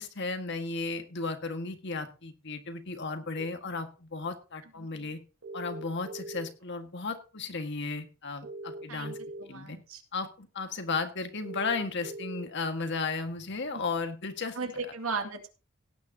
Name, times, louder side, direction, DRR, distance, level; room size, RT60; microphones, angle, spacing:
voice 1, 0.0-5.2 5.5-9.2 9.5-9.8 10.1-14.6, left 4 dB, 55° left, 7 dB, 1.7 m, -34 dB
sound 1, 3.4-3.5 5.4-6.6 8.4-9.4 11.4-12.4, right 2 dB, 65° right, 3.9 m, -41 dB
voice 2, 4.6-5.2 8.9-10.0 13.7-13.8 14.5-15.5, right 4 dB, 85° right, 5 dB, 2.3 m, -37 dB
17.5 x 9.6 x 2.8 m, 0.33 s
head